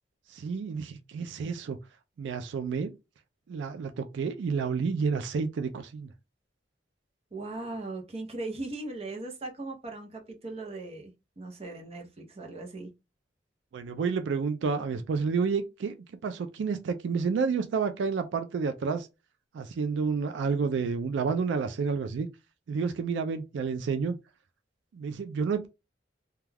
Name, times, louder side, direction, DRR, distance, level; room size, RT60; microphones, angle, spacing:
voice 1, 0.3-1.8 2.2-2.9 3.5-6.1 13.7-15.9 16.2-19.1 19.5-22.3 22.7-24.2 24.9-25.7, right 5 dB, 85° right, 0.3 m, -30 dB
voice 2, 7.3-12.9, right 2 dB, 35° right, 0.7 m, -39 dB
2.3 x 2.2 x 3.2 m
head